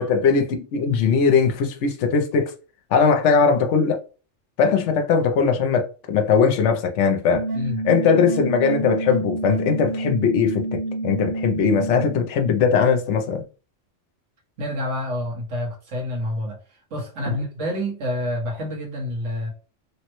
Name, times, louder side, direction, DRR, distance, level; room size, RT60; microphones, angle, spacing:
voice 1, 0.0-2.5 2.9-4.0 4.6-7.5 7.8-13.4, left 5 dB, 75° left, 0.9 m, -20 dB
sound 1, 7.3-12.3, right 2 dB, 20° right, 0.8 m, -28 dB
voice 2, 14.6-16.6 16.9-19.5, left 1 dB, 75° right, 1.4 m, -28 dB
3.2 x 2.1 x 2.9 m
omnidirectional pair, 1.3 m